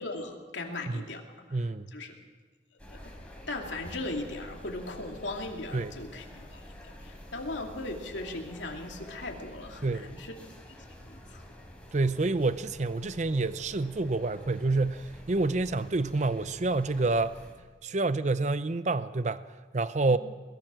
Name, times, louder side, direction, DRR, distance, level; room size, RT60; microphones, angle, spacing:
voice 1, 0.0-1.6 1.9-2.2 2.9-3.0 3.5-10.3 10.7-10.8 11.0-11.4 20.1-20.2, left 2 dB, 75° left, 2.7 m, -38 dB
voice 2, 1.5-1.9 5.7-5.9 9.8-10.1 11.9-17.4 17.8-19.4 19.7-20.2, right 3 dB, 40° right, 0.6 m, -28 dB
sound 1, 2.8-17.5, equal, 5° left, 3.8 m, -48 dB
22.5 x 20.5 x 6.3 m
head